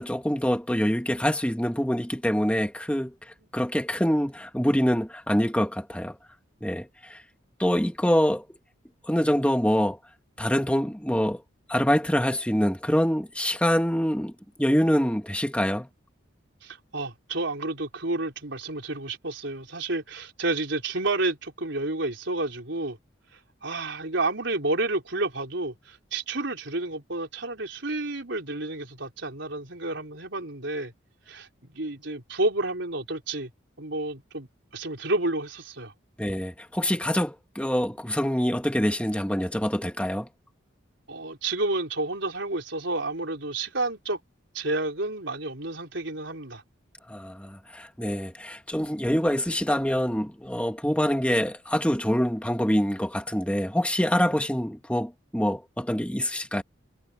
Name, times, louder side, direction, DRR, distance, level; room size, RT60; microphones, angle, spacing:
voice 1, 0.0-3.1 3.5-6.1 6.6-7.2 7.6-8.4 9.1-10.0 10.4-11.4 11.7-14.3 14.6-15.9 36.2-40.3 47.1-56.6, equal, 5° left, 1.5 m, -25 dB
voice 2, 16.6-23.0 23.6-30.9 31.3-33.5 33.8-34.5 34.7-35.9 41.1-44.2 44.5-46.6, right 2 dB, 65° right, 4.3 m, -30 dB
head